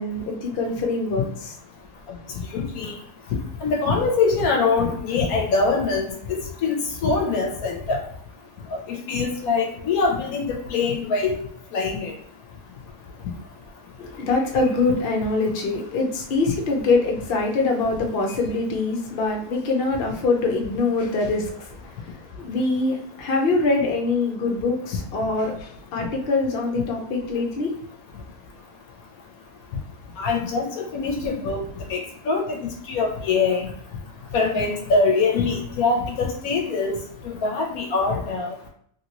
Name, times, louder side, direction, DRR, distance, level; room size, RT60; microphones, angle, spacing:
voice 1, 0.0-1.5 14.0-27.7, left 3 dB, 50° left, 1 dB, 0.7 m, -24 dB
voice 2, 2.5-2.9 3.6-6.8 7.0-8.0 8.9-11.4 11.7-12.1 30.2-31.6 31.9-33.7 34.3-37.0 37.2-38.5, left 4 dB, 70° left, 1 dB, 1.1 m, -23 dB
3.2 x 2.8 x 2.8 m, 0.64 s
omnidirectional pair, 1.7 m